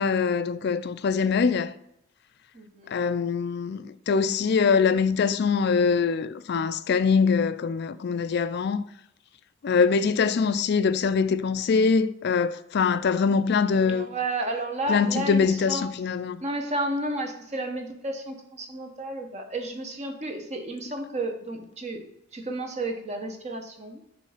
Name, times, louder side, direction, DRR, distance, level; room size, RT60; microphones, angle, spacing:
voice 1, 0.0-1.7 2.9-8.9 9.6-14.1 14.9-16.4, left 5 dB, 55° left, 0.4 m, -23 dB
voice 2, 2.5-3.0 13.7-15.9 16.4-22.0 22.3-24.0, right 2 dB, 35° right, 1.0 m, -32 dB
6.1 x 3.3 x 5.6 m
head